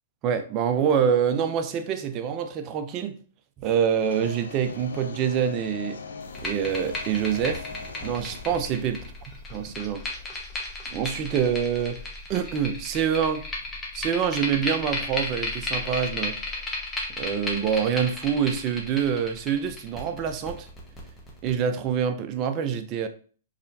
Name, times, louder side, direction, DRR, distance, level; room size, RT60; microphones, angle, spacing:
voice 1, 0.2-3.2 3.6-6.0 6.4-7.7 8.0-9.0 9.5-10.0 10.9-12.0 12.3-13.5 13.9-16.4 17.2-20.7 21.4-23.1, right 8 dB, 35° right, 0.6 m, -26 dB
sound 1, 3.9-9.1, left 5 dB, 85° left, 0.6 m, -41 dB
sound 2, 6.2-21.5, left 2 dB, 15° left, 1.3 m, -34 dB
4.9 x 3.3 x 2.7 m
hypercardioid pair, 125°, 0 cm